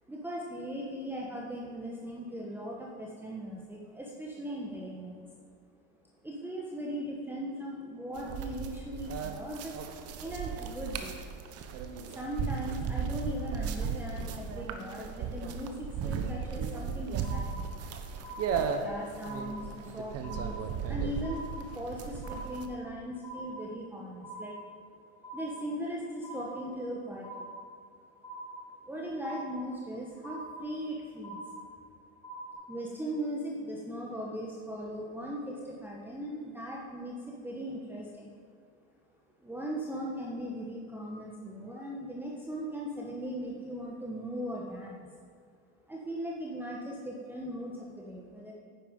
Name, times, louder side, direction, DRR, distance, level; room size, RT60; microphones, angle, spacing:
voice 1, 0.1-5.3 6.2-9.8 10.2-11.2 12.1-17.7 18.5-24.5 25.3-27.5 28.8-31.4 32.7-38.3 39.4-45.1 45.9-48.5, equal, 5° right, -3 dB, 1.3 m, -39 dB
sound 1, 8.2-22.7, right 6 dB, 40° right, 1.1 m, -36 dB
sound 2, 17.2-17.9 18.2-18.9 19.2-19.9 20.2-20.9 21.2-21.9 22.2-22.9 23.2-23.9 24.2-24.9 25.2-25.9 26.2-26.9 27.2-27.9 28.2-28.9 29.2-29.9 30.2-30.9 31.2-31.9 32.2-32.5, right 1 dB, 10° left, 2.7 m, -44 dB
10.0 x 8.9 x 5.4 m, 2.1 s
supercardioid pair, 110°, 36 cm